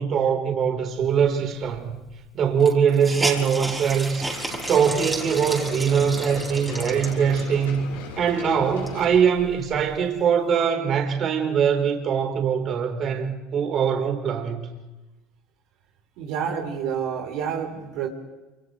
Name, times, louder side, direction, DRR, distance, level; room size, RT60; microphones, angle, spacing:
voice 1, 0.0-2.0 2.3-4.3 4.7-7.9 8.2-14.7, right 7 dB, 45° right, 4.2 m, -22 dB
Hiss, 1.8-1.9 2.1-2.2 2.6-7.6 8.2-8.3 8.7-10.0, right 2 dB, 10° right, 5.0 m, -32 dB
sound 1, 4.2-9.2, left 6 dB, 80° left, 6.7 m, -38 dB
voice 2, 16.2-18.1, right 7 dB, 65° right, 4.0 m, -28 dB
28.5 x 27.5 x 3.4 m
hypercardioid pair, 80°, 0 cm